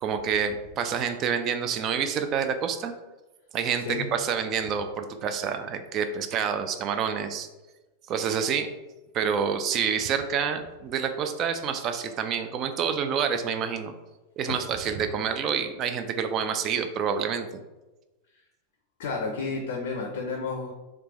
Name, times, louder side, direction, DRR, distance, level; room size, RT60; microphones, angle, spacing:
voice 1, 0.0-2.9 3.5-7.5 8.1-8.7 9.1-13.9 14.4-17.5, right 7 dB, 35° right, 8 dB, 0.4 m, -28 dB
voice 2, 19.0-20.7, left 4 dB, 55° left, 2 dB, 0.5 m, -31 dB
3.3 x 2.9 x 3.1 m, 1.1 s
figure-of-eight pair, 90°, 0 cm